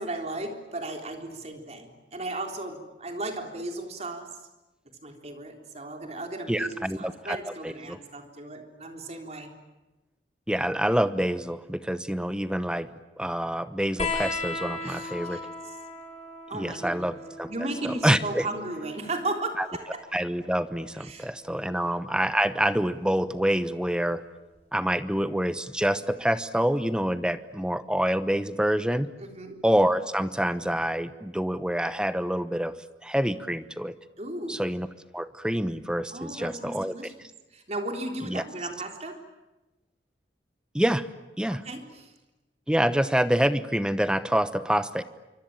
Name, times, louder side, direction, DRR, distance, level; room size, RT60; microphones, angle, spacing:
voice 1, 0.0-4.3 5.0-9.5 14.8-15.4 16.5-17.1 17.5-20.0 21.0-21.3 21.6-21.8 29.2-29.6 34.2-34.6 36.1-37.1 37.5-39.2 41.5-42.1, right 2 dB, 40° right, 4 dB, 3.7 m, -35 dB
voice 2, 6.5-8.0 10.5-12.9 13.2-15.5 16.5-17.5 17.8-18.5 19.6-19.7 20.1-24.2 24.7-29.1 29.6-32.8 33.0-33.9 34.5-34.9 35.1-36.9 38.3-38.4 40.7-41.1 41.4-41.6 42.7-45.0, equal, 5° right, 13 dB, 0.9 m, -26 dB
sound 1, 14.0-21.1 22.4-23.3 24.6-24.7, left 3 dB, 40° left, 6.3 m, -37 dB
26.5 x 24.5 x 8.9 m, 1.0 s
head